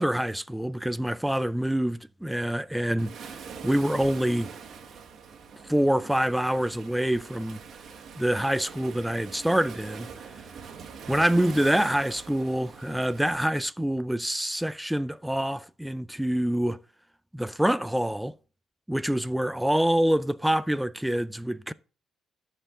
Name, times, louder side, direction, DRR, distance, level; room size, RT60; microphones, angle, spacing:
voice 1, 0.0-4.5 5.6-7.6 8.2-10.1 11.1-16.8 17.3-18.3 18.9-21.7, right 1 dB, 5° right, 0.4 m, -26 dB
Waves surf, 3.0-13.3, right 6 dB, 60° right, 1.5 m, -43 dB
13.0 x 4.5 x 3.7 m
cardioid pair, 90°, 0 cm